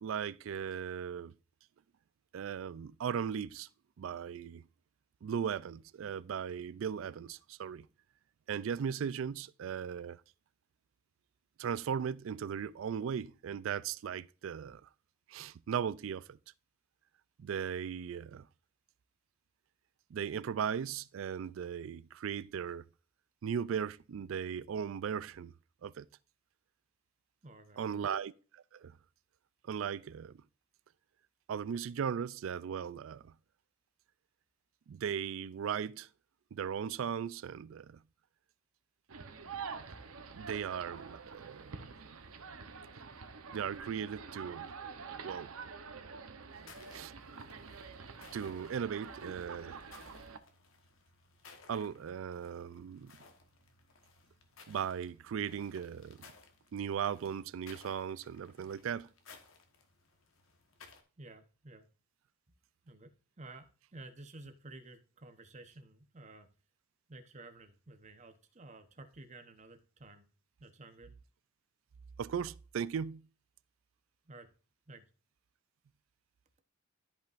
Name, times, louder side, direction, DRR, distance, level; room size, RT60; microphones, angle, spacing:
voice 1, 0.0-1.3 2.3-3.7 4.0-4.6 5.2-7.9 8.5-10.2 11.6-14.8 15.3-16.4 17.4-18.5 20.1-22.8 23.4-25.5 25.8-26.0 27.8-28.9 29.7-30.4 31.5-33.3 34.9-36.1 36.5-38.0 40.3-41.8 43.5-44.7 45.2-45.5 46.9-47.1 48.3-49.8 51.7-53.1 54.7-56.2 56.7-59.1 72.2-73.2, right 7 dB, 65° right, 0.3 m, -37 dB
voice 2, 27.4-28.1 61.2-61.9 62.8-63.1 63.4-66.5 67.1-70.3 70.6-71.2 74.3-74.5 74.9-75.1, right 2 dB, 35° right, 0.9 m, -52 dB
sound 1, 39.1-50.4, right 5 dB, 85° right, 0.9 m, -47 dB
sound 2, 46.5-61.0, left 4 dB, 70° left, 1.2 m, -60 dB
13.5 x 5.5 x 2.5 m
head